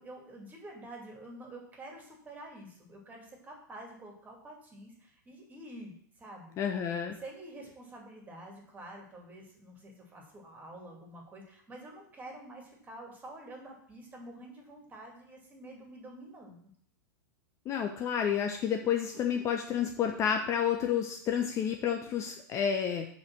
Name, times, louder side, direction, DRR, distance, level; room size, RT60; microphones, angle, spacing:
voice 1, 0.0-6.6 7.1-16.7, right 1 dB, 15° right, 0 dB, 2.4 m, -48 dB
voice 2, 6.6-7.2 17.7-23.1, left 8 dB, 30° left, 5 dB, 0.7 m, -30 dB
5.3 x 5.2 x 6.3 m, 0.62 s
figure-of-eight pair, 95°, 10 cm